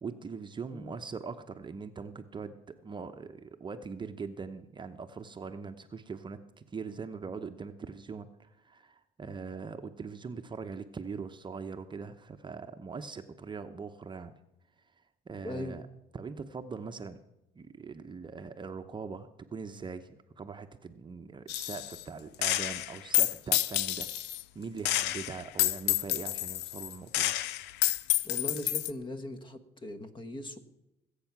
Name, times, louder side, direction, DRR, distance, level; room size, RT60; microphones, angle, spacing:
voice 1, 0.0-14.3 15.3-15.9 16.1-17.2 17.5-27.4, right 5 dB, 25° right, 7 dB, 0.8 m, -42 dB
voice 2, 15.4-15.8 28.2-30.6, left 1 dB, 30° left, 9 dB, 1.5 m, -39 dB
Gunshot gunfire, 21.5-22.0 22.4-24.4 24.9-28.9, left 14 dB, 90° left, 0.6 m, -29 dB
20.0 x 8.3 x 6.0 m, 0.93 s
cardioid pair, 110°, 17 cm